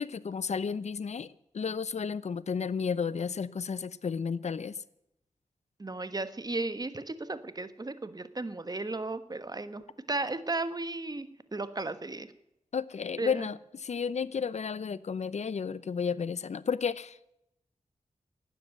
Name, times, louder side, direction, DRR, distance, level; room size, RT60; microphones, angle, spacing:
voice 1, 0.0-4.7 12.7-17.4, left 6 dB, 65° left, 0.7 m, -32 dB
voice 2, 5.8-12.3 13.2-13.5, right 2 dB, 30° right, 1.4 m, -35 dB
12.5 x 9.5 x 9.0 m
cardioid pair, 50°, 13 cm